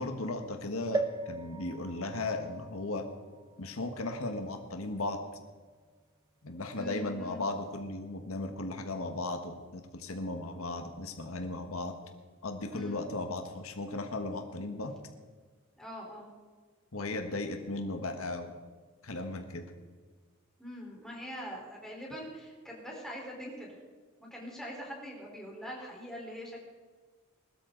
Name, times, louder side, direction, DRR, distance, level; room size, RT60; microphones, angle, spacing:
voice 1, 0.0-3.1 3.6-5.2 6.4-11.9 12.4-14.9 16.9-18.6 19.0-19.7, left 2 dB, 80° left, 5 dB, 1.5 m, -36 dB
sound 1, 0.9-4.6 5.2-5.3 5.5-5.6, right 3 dB, 20° right, 1.1 m, -39 dB
voice 2, 6.7-7.4 12.7-13.0 15.8-16.3 20.6-23.7 24.2-26.6, equal, ahead, -3 dB, 4.2 m, -43 dB
21.0 x 13.0 x 4.0 m, 1.5 s
head